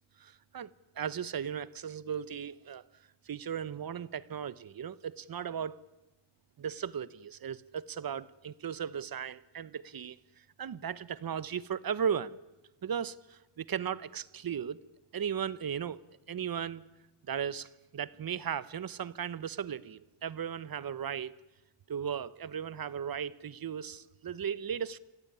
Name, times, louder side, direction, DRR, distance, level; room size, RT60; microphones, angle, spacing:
voice 1, 0.2-0.7 1.0-2.8 3.2-5.8 6.6-10.2 10.6-12.4 12.8-14.8 15.1-16.0 16.3-16.8 17.3-21.3 21.9-25.0, right 8 dB, 45° right, 0.9 m, -36 dB
26.0 x 14.5 x 9.8 m
wide cardioid pair, 145°, 49 cm